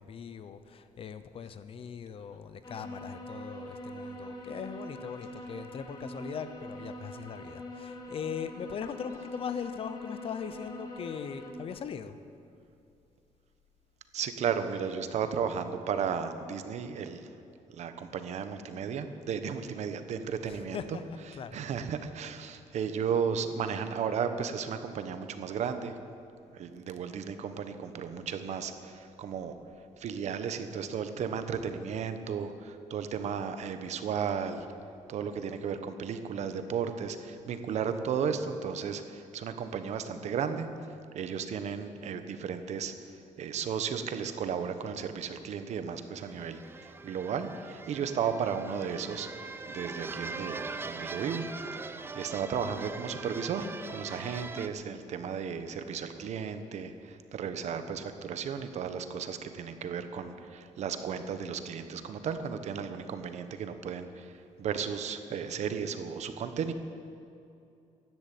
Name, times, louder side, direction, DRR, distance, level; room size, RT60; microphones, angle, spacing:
voice 1, 0.0-12.2 20.5-21.6, left 7 dB, 45° left, 11 dB, 0.8 m, -40 dB
sound 1, 2.6-11.5, left 1 dB, 30° left, 1.9 m, -43 dB
voice 2, 14.1-17.3 17.8-21.0 21.5-26.0 26.5-29.5 30.0-34.6 35.1-40.7 41.1-42.9 43.4-49.3 49.7-51.4 51.7-64.3 64.6-66.7, right 7 dB, 60° right, 9 dB, 1.1 m, -34 dB
sound 2, 46.2-54.7, right 4 dB, 15° right, 0.5 m, -42 dB
15.5 x 10.5 x 8.5 m, 2.6 s
cardioid pair, 160°, 13 cm